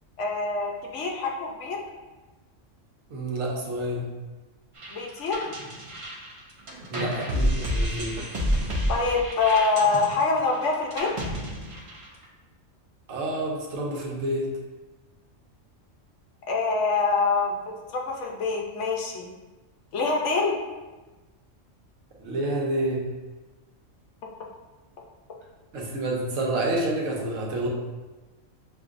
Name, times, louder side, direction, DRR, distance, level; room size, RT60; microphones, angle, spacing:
voice 1, 0.2-1.8 4.9-5.5 8.9-11.1 16.5-19.3 19.9-20.6, left 4 dB, 70° left, 0 dB, 0.9 m, -25 dB
voice 2, 3.1-4.0 6.8-8.2 13.1-14.5 22.2-23.1 25.7-27.7, right 1 dB, 80° right, -2 dB, 1.2 m, -28 dB
sound 1, 4.8-12.2, equal, 40° right, 0.5 m, -30 dB
6.3 x 2.6 x 2.5 m, 1.2 s
omnidirectional pair, 1.3 m